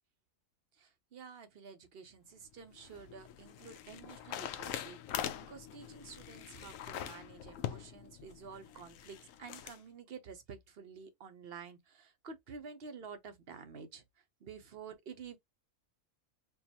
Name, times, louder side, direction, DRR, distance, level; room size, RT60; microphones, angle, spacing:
voice 1, 0.7-15.4, right 6 dB, 55° right, 0.8 m, -50 dB
sound 1, 2.5-9.8, left 10 dB, 75° left, 0.9 m, -43 dB
4.6 x 2.4 x 2.7 m
omnidirectional pair, 1.4 m